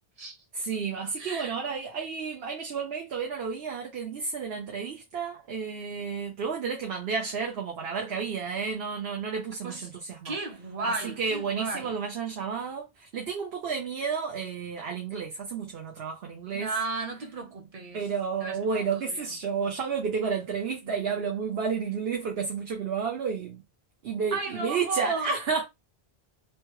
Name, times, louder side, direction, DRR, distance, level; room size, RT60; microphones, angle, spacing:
voice 1, 0.5-10.4 10.8-16.7 17.9-23.6 24.0-25.6, right 5 dB, 75° right, 1.0 m, -31 dB
voice 2, 1.2-1.5 9.6-9.9 10.2-12.0 16.5-18.0 18.4-19.3 20.8-21.1 24.3-25.3, right 3 dB, 40° right, 0.9 m, -34 dB
3.0 x 2.3 x 3.1 m
omnidirectional pair, 1.0 m